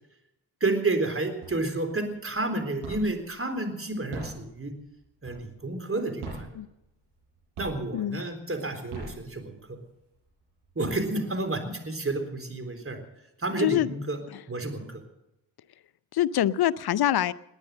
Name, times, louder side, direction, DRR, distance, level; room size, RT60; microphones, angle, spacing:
voice 1, 0.6-4.7 5.2-6.5 7.6-9.8 10.8-13.0 13.4-14.2 14.5-15.0, right 2 dB, 25° right, 7 dB, 3.8 m, -30 dB
sound 1, 1.4-1.9 2.3-3.3 3.9-5.7 6.1-7.2 7.5-8.1 8.7-9.8 10.3-10.4 10.6-11.5, right 3 dB, 80° right, 7.4 m, -41 dB
voice 2, 13.6-13.9 14.3-14.4 16.1-17.3, left 12 dB, 50° left, 18 dB, 0.7 m, -25 dB
19.0 x 9.9 x 7.6 m, 0.88 s
hypercardioid pair, 40°, 50 cm